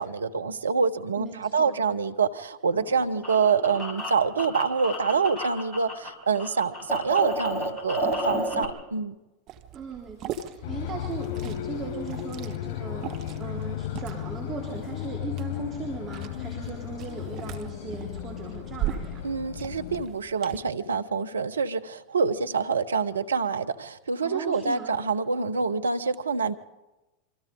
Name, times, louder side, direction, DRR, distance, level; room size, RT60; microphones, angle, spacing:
voice 1, 0.0-9.1 19.2-26.5, right 5 dB, 85° right, 9 dB, 1.1 m, -26 dB
voice 2, 1.2-1.8 9.7-19.2 24.2-24.9, right 5 dB, 30° right, 0 dB, 3.9 m, -38 dB
sound 1, 2.7-6.1 6.3-8.7, left 1 dB, 10° left, 5.8 m, -32 dB
Liquid, 9.5-20.6, right 11 dB, 45° right, 1.7 m, -40 dB
sound 2, 10.6-20.1, left 12 dB, 55° left, 4.6 m, -35 dB
27.0 x 25.0 x 4.0 m, 1.0 s
hypercardioid pair, 90°, 0 cm